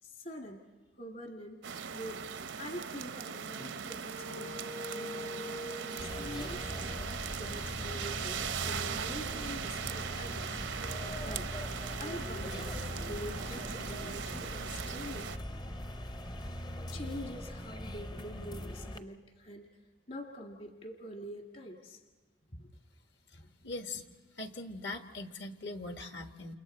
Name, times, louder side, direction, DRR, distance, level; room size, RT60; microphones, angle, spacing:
voice 1, 0.0-0.6 1.0-1.6 1.9-2.2 2.6-4.5 4.9-6.9 7.4-8.2 8.6-10.6 11.1-11.5 12.0-15.3 16.9-19.7 20.1-22.0 22.5-22.7, equal, 50° left, 2 dB, 1.8 m, -45 dB
sound 1, 1.6-15.4, right 7 dB, 75° right, 0.6 m, -39 dB
Wind instrument woodwind instrument, 3.5-7.8, left 1 dB, 90° left, 3.4 m, -45 dB
sound 2, 6.0-19.0, left 1 dB, 25° left, 0.6 m, -41 dB
voice 2, 23.3-24.0 24.3-26.5, left 2 dB, 65° left, 6 dB, 1.5 m, -41 dB
29.5 x 28.5 x 4.3 m, 1.3 s
head